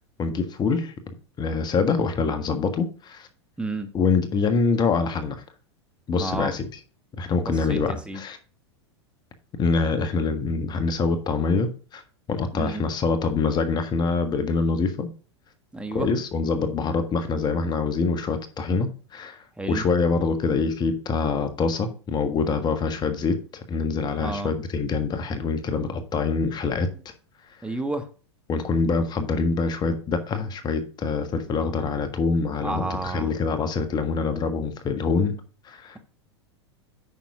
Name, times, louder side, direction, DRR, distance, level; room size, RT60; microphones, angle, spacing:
voice 1, 0.2-0.9 1.4-3.3 3.9-5.4 6.1-6.7 7.2-8.4 9.6-12.0 12.3-15.1 15.9-19.4 19.7-23.4 23.7-26.9 28.5-35.4 35.6-36.0, left 4 dB, 30° left, 8 dB, 1.5 m, -25 dB
voice 2, 3.6-3.9 6.1-6.5 7.7-8.2 12.5-12.9 15.7-16.1 19.6-19.9 24.1-24.5 27.6-28.1 32.6-33.3, right 2 dB, 5° right, 6 dB, 1.3 m, -30 dB
9.0 x 6.2 x 3.7 m, 0.37 s
hypercardioid pair, 95°, 15 cm